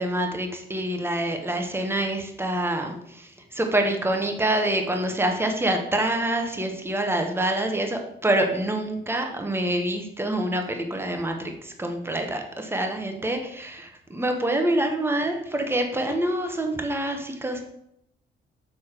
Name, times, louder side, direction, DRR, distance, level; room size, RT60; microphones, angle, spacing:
voice 1, 0.0-2.9 3.6-11.5 11.8-17.6, right 1 dB, 10° right, 4 dB, 1.1 m, -26 dB
6.7 x 3.1 x 5.9 m, 0.77 s
cardioid pair, 90°, 20 cm